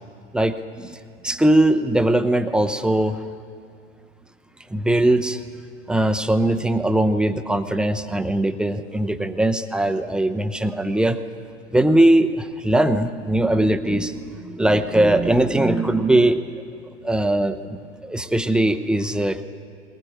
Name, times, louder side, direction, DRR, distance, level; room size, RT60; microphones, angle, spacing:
voice 1, 0.3-3.2 4.7-5.4 5.9-11.2 11.7-16.6 17.0-19.4, right 1 dB, ahead, 9 dB, 0.5 m, -20 dB
20.5 x 19.5 x 8.7 m, 2.4 s
figure-of-eight pair, 95°, 37 cm